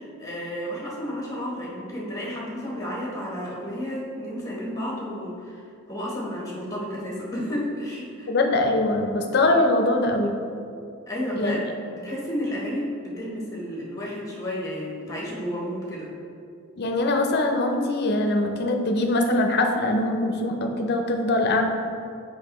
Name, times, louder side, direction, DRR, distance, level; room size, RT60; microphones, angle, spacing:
voice 1, 0.0-8.3 11.1-11.6 11.9-16.1, equal, 15° left, -4 dB, 1.2 m, -32 dB
voice 2, 8.3-10.3 11.4-11.6 16.8-21.6, left 2 dB, 50° left, 4 dB, 0.6 m, -22 dB
6.6 x 5.1 x 3.0 m, 2.5 s
head